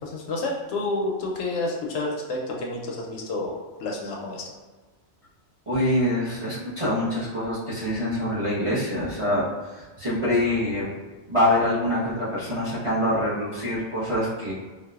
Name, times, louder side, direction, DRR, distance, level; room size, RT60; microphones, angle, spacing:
voice 1, 0.0-4.5, left 2 dB, 75° left, -1 dB, 0.9 m, -29 dB
voice 2, 5.7-10.9 11.3-14.5, left 1 dB, 30° right, -10 dB, 0.9 m, -25 dB
3.9 x 2.3 x 2.3 m, 1.3 s
omnidirectional pair, 1.2 m